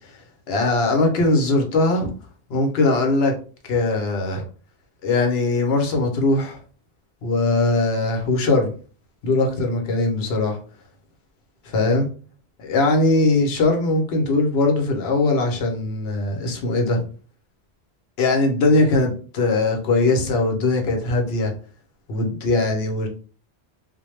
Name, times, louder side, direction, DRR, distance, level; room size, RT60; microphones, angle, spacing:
voice 1, 0.5-2.1 2.5-3.3 3.7-4.4 5.0-6.6 7.2-8.7 9.2-10.6 11.6-12.1 12.6-17.1 18.2-21.5 22.1-23.1, left 2 dB, 70° left, 3 dB, 0.9 m, -20 dB
2.2 x 2.0 x 3.0 m, 0.39 s
omnidirectional pair, 1.1 m